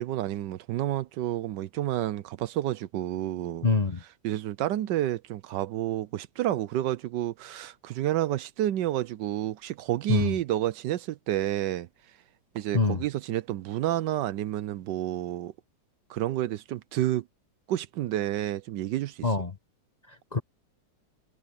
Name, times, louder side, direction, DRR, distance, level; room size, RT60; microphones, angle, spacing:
voice 1, 0.0-3.7 4.2-11.9 12.5-15.5 16.1-17.2 17.7-19.2, right 13 dB, 75° right, 1.3 m, -30 dB
voice 2, 3.6-4.0 10.1-10.3 12.7-13.0 19.2-19.6 20.1-20.4, left 4 dB, 25° left, 1.3 m, -25 dB
omnidirectional pair, 2.0 m